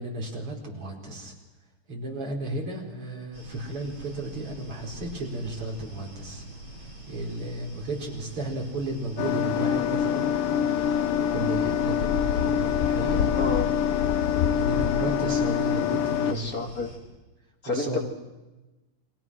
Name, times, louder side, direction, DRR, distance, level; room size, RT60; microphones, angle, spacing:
voice 1, 0.0-1.3 1.9-6.4 7.1-10.3 11.3-13.3 14.6-16.7 17.7-18.0, right 1 dB, 85° right, 1 dB, 5.4 m, -33 dB
sound 1, 3.3-17.0, right 2 dB, 65° right, 8.0 m, -44 dB
sound 2, 9.2-16.3, left 9 dB, 80° left, 1.9 m, -25 dB
voice 2, 13.3-13.7 16.3-16.9 17.6-18.0, left 3 dB, 40° left, 4 dB, 2.5 m, -30 dB
29.5 x 23.5 x 6.3 m, 1.1 s
omnidirectional pair, 2.4 m